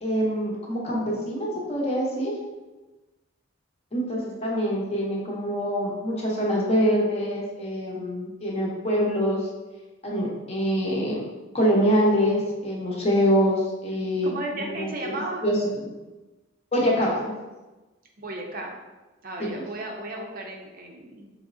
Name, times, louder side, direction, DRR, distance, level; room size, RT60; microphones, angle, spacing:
voice 1, 0.0-2.3 3.9-9.5 10.0-11.2 11.5-15.9 16.7-17.3, equal, 35° left, -3 dB, 0.9 m, -25 dB
voice 2, 14.2-15.4 18.2-18.8 19.2-21.3, right 2 dB, 45° right, 0 dB, 0.6 m, -34 dB
4.9 x 3.1 x 2.6 m, 1.2 s
head